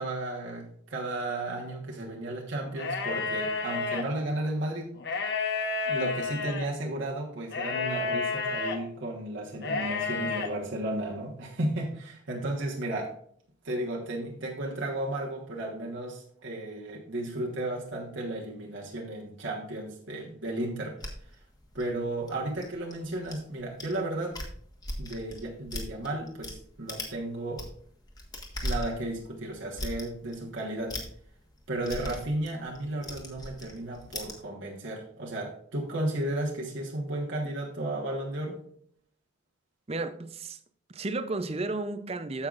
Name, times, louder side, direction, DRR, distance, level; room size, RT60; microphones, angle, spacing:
voice 1, 0.0-4.9 5.9-13.1 13.6-21.0 21.7-24.4 25.0-27.6 28.6-31.0 31.7-38.6, right 1 dB, 65° right, -2 dB, 1.3 m, -34 dB
sound 1, 2.7-4.0 5.0-6.7 7.5-8.8 9.6-10.5, left 4 dB, 50° left, 1.1 m, -30 dB
sound 2, 21.0-23.4 23.8-24.0 24.2-26.6 26.9-27.2 27.5-34.4, left 1 dB, 20° left, 1.4 m, -38 dB
voice 2, 39.9-40.6 40.9-42.5, right 2 dB, 30° right, 11 dB, 0.5 m, -33 dB
14.0 x 5.6 x 2.5 m, 0.62 s
head